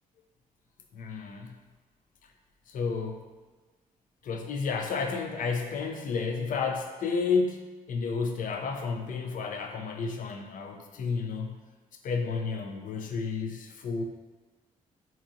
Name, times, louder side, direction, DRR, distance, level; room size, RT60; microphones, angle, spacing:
voice 1, 0.9-1.6 2.7-3.3 4.2-11.6 12.0-14.0, left 5 dB, 60° left, 3 dB, 0.5 m, -31 dB
3.6 x 2.9 x 2.6 m, 1.2 s
supercardioid pair, 60°, 15 cm